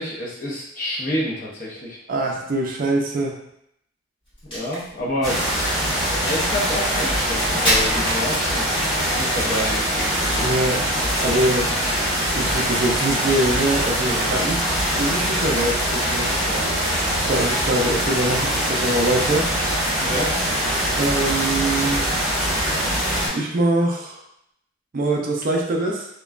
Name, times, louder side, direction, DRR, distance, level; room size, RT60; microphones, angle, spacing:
voice 1, 0.0-2.0 4.5-5.4 6.1-8.7 9.2-10.5 14.1-14.6 16.4-17.2 20.0-20.3, left 1 dB, 45° left, -4 dB, 0.7 m, -29 dB
voice 2, 2.1-3.4 5.2-5.3 10.4-10.9 11.2-11.7 12.3-14.6 15.0-16.3 17.3-19.5 21.0-22.1 23.3-24.2 24.9-26.1, right 2 dB, 45° right, 0 dB, 0.4 m, -23 dB
Crack, 4.3-8.9, equal, 25° left, 1.2 m, -28 dB
sound 1, 5.2-23.3, equal, ahead, 1.2 m, -23 dB
3.0 x 2.2 x 2.3 m, 0.75 s
head